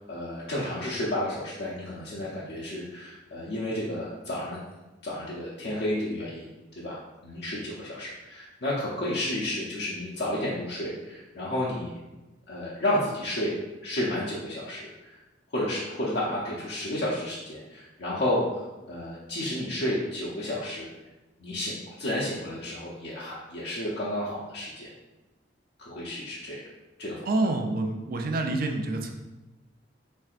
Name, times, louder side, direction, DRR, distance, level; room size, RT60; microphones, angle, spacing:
voice 1, 0.0-4.6 5.0-6.5 6.8-11.9 12.5-13.5 13.8-15.2 15.5-20.9 21.4-24.9 25.8-26.6 27.0-27.3, left 1 dB, 60° left, -7 dB, 0.6 m, -31 dB
voice 2, 27.3-29.1, right 2 dB, 50° right, 4 dB, 0.4 m, -27 dB
4.4 x 3.3 x 2.4 m, 1.1 s
head